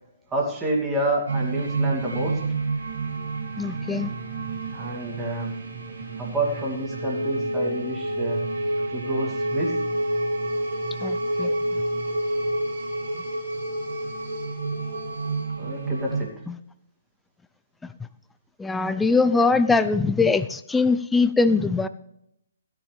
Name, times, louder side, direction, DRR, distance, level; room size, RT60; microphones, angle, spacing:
voice 1, 0.3-2.4 4.7-5.5 6.2-8.4 8.9-9.8 15.6-16.4, right 1 dB, 15° right, -2 dB, 2.5 m, -28 dB
sound 1, 1.3-16.2, right 2 dB, 70° right, 3.1 m, -28 dB
voice 2, 3.6-4.1 11.0-11.6 16.5-16.6 18.6-21.9, left 4 dB, 5° left, 11 dB, 0.4 m, -22 dB
16.0 x 10.0 x 3.4 m, 0.79 s
figure-of-eight pair, 135°, 0 cm